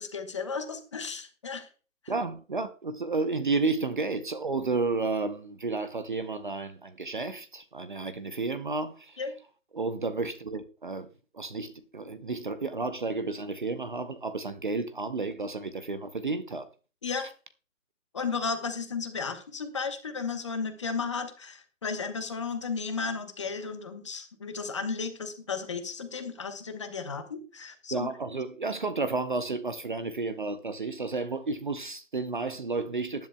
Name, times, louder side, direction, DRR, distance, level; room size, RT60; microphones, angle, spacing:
voice 1, 0.0-1.7 9.2-9.3 17.0-17.3 18.1-28.1, left 5 dB, 20° left, 1.0 m, -34 dB
voice 2, 2.1-9.2 9.7-11.1 11.3-16.7 27.9-33.3, right 3 dB, 40° right, 0.7 m, -32 dB
18.5 x 10.5 x 2.2 m
figure-of-eight pair, 160°, 40 cm